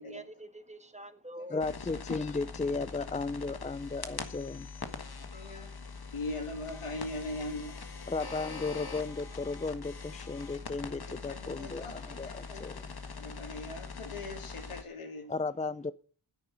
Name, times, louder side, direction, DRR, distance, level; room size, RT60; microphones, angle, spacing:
voice 1, 0.0-1.7 5.0-5.5 6.0-6.1 10.4-10.5 11.9-13.6, right 1 dB, 15° right, 1.5 m, -49 dB
voice 2, 1.5-4.7 8.1-12.8 15.3-15.9, left 3 dB, 15° left, 0.5 m, -35 dB
sound 1, 1.6-14.8, left 4 dB, 50° left, 1.6 m, -43 dB
voice 3, 3.8-4.2 5.3-5.7 6.1-7.8 11.1-12.6 13.2-15.3, left 2 dB, 90° left, 2.7 m, -41 dB
10.0 x 9.7 x 6.2 m
cardioid pair, 65°, 49 cm